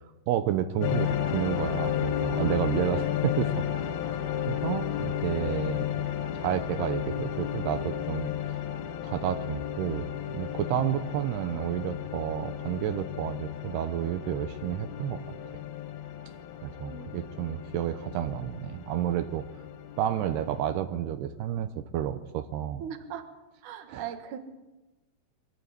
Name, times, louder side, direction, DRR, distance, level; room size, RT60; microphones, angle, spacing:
voice 1, 0.3-3.6 4.5-5.9 6.3-8.3 9.0-15.2 16.6-19.5 20.0-22.8 23.9-24.1, right 11 dB, 80° right, 9 dB, 2.8 m, -30 dB
sound 1, 0.8-20.6, left 10 dB, 75° left, 2.8 m, -33 dB
voice 2, 22.8-23.2 23.6-24.4, right 9 dB, 60° right, 7 dB, 2.7 m, -39 dB
23.5 x 14.5 x 8.3 m, 1.1 s
omnidirectional pair, 4.7 m